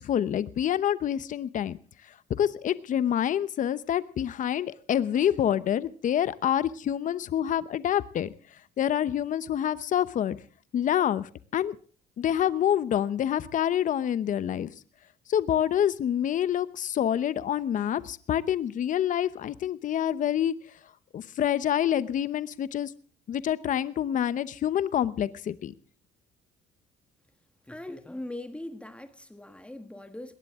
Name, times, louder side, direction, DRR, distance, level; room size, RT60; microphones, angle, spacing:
voice 1, 0.0-1.8 2.4-8.3 8.8-10.4 10.7-11.8 12.2-14.7 15.3-20.5 21.1-22.9 23.3-25.7, left 10 dB, 50° left, 16 dB, 0.9 m, -27 dB
voice 2, 27.7-30.3, left 1 dB, 5° left, 8 dB, 1.5 m, -40 dB
21.0 x 18.0 x 3.7 m, 0.40 s
cardioid pair, 110°, 17 cm